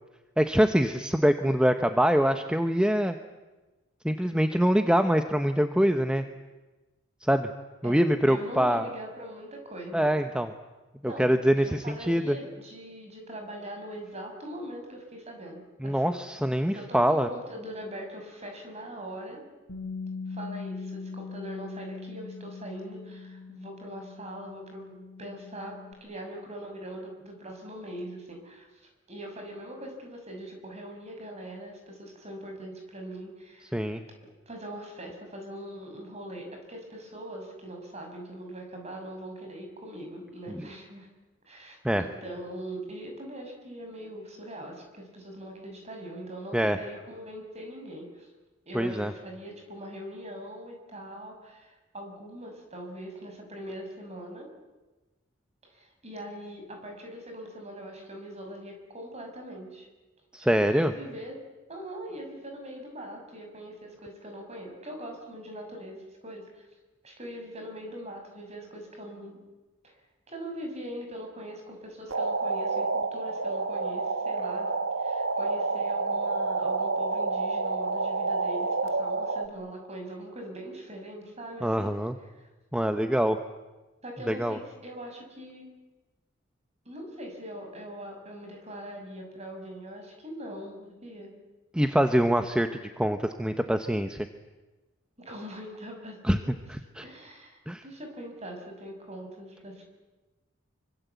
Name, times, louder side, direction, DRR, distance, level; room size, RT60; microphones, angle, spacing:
voice 1, 0.4-3.2 4.0-6.3 7.2-7.5 7.8-8.9 9.9-10.5 11.0-12.4 15.8-17.3 33.7-34.0 40.5-40.6 41.8-42.0 46.5-46.8 48.7-49.1 60.3-60.9 81.6-82.2 82.7-83.4 84.3-84.6 91.7-92.7 93.0-94.3 96.2-96.4 96.7-97.0 97.7-97.8, equal, 5° right, 7 dB, 0.9 m, -24 dB
voice 2, 7.8-10.1 11.0-16.2 16.7-19.4 20.3-33.8 34.5-41.1 41.5-48.3 48.6-54.5 55.7-59.9 60.6-61.4 61.7-66.7 67.0-69.4 69.8-70.0 70.3-74.7 75.0-82.0 82.3-82.4 84.0-85.7 86.8-91.3 95.2-96.5 97.0-99.8, right 1 dB, 35° right, 3 dB, 6.5 m, -41 dB
Bass guitar, 19.7-25.9, left 4 dB, 60° left, 2.9 m, -41 dB
sound 1, 72.1-79.5, right 3 dB, 90° right, 1.6 m, -29 dB
26.0 x 25.0 x 8.3 m, 1.2 s
head